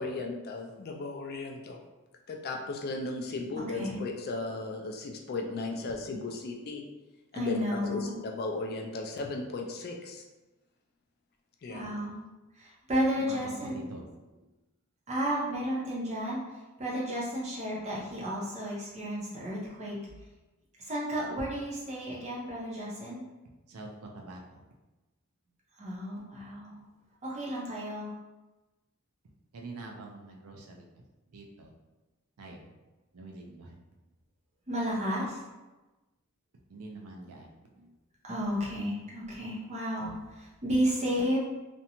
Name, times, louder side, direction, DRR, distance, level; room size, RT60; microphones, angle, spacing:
voice 1, 0.0-1.8 2.3-6.8 7.3-10.2 11.6-11.9, left 3 dB, 45° left, 1 dB, 0.3 m, -36 dB
voice 2, 3.6-4.0 7.3-8.2 11.7-12.2 12.5-13.8 15.1-20.2 20.8-23.2 25.8-26.8 27.2-28.1 34.7-35.4 38.2-41.4, equal, 30° right, -5 dB, 0.7 m, -32 dB
voice 3, 13.2-14.1 23.7-24.6 29.2-31.7 32.4-32.7 33.1-33.8 36.7-37.6, right 2 dB, 85° right, 0 dB, 0.5 m, -46 dB
2.5 x 2.1 x 2.8 m, 1.1 s
head